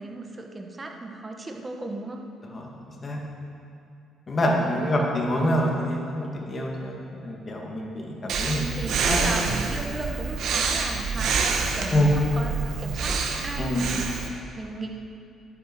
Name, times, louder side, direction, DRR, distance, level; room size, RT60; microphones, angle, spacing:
voice 1, 0.0-2.2 4.6-5.0 8.5-14.9, right 2 dB, 25° right, 3 dB, 1.1 m, -36 dB
voice 2, 2.5-3.2 4.3-8.6 9.1-9.2 11.9-12.1 13.6-13.8, left 1 dB, 35° left, -1 dB, 1.8 m, -26 dB
Breathing, 8.3-14.3, right 5 dB, 70° right, 1.0 m, -27 dB
11.0 x 8.8 x 4.6 m, 2.6 s
cardioid pair, 105°, 0 cm